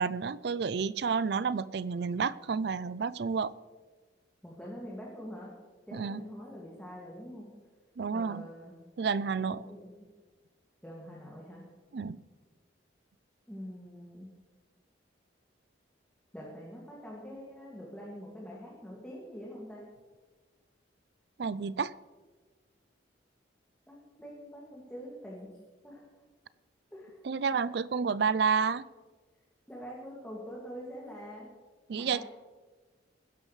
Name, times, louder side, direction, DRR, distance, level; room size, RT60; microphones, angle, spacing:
voice 1, 0.0-3.5 5.9-6.2 8.0-8.5 9.0-9.7 11.9-12.2 21.4-21.9 27.2-28.8 31.9-32.2, right 5 dB, 60° right, 18 dB, 0.4 m, -30 dB
voice 2, 4.4-5.5 5.9-7.5 8.1-8.8 9.4-10.1 10.8-11.6 13.5-14.3 16.3-19.8 23.9-25.5 25.8-26.1 26.9-27.2 29.7-31.5 31.9-32.2, equal, 5° left, -5 dB, 2.1 m, -45 dB
21.0 x 11.0 x 3.2 m, 1.4 s
head